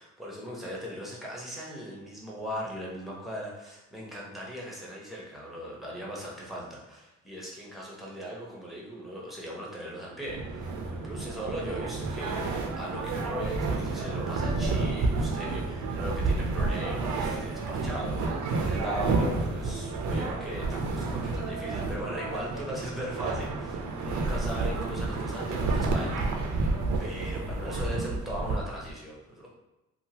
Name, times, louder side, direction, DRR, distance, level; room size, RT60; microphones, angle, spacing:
voice 1, 0.0-26.7 27.0-29.5, equal, ahead, -4 dB, 0.9 m, -39 dB
sound 1, 10.3-28.9, right 3 dB, 75° right, 0.5 m, -30 dB
2.7 x 2.3 x 2.8 m, 0.99 s
cardioid pair, 90°, 30 cm